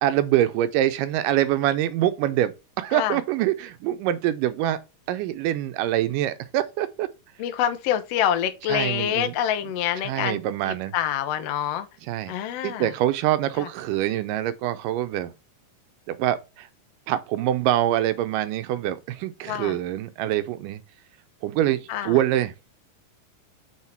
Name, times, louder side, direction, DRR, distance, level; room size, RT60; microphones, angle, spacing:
voice 1, 0.0-4.8 5.1-7.1 8.7-9.3 10.0-10.9 12.1-12.3 12.6-15.3 16.1-16.7 17.1-20.8 21.4-22.5, right 13 dB, 80° right, 2.2 m, -25 dB
voice 2, 7.4-10.4 10.6-11.9 12.3-12.9 13.6-13.7 19.5-19.8 21.9-22.2, left 10 dB, 80° left, 1.4 m, -26 dB
7.2 x 3.6 x 4.4 m
omnidirectional pair, 4.0 m